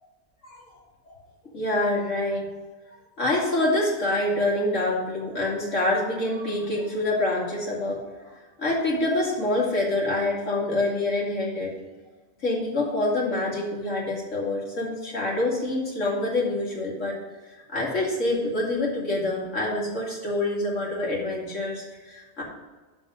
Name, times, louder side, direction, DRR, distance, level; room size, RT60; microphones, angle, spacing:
voice 1, 1.5-2.5 3.2-11.7 12.4-17.2 17.7-22.4, left 2 dB, 90° left, -4 dB, 2.7 m, -26 dB
7.3 x 5.4 x 6.3 m, 1.3 s
omnidirectional pair, 1.2 m